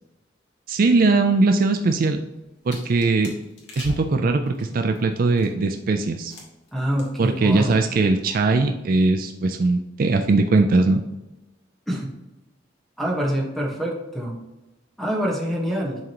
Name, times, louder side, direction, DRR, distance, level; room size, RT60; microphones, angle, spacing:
voice 1, 0.7-2.2 2.7-3.3 3.8-6.3 7.2-11.0, right 3 dB, 50° right, 6 dB, 0.4 m, -20 dB
sound 1, 2.3-5.7 6.3-6.7 7.0-7.4 7.6-7.9, left 1 dB, 70° left, 1.7 m, -40 dB
voice 2, 6.7-7.7 11.9-12.1 13.0-14.4 15.0-16.0, equal, ahead, -2 dB, 1.3 m, -25 dB
10.5 x 3.8 x 3.0 m, 1.0 s
head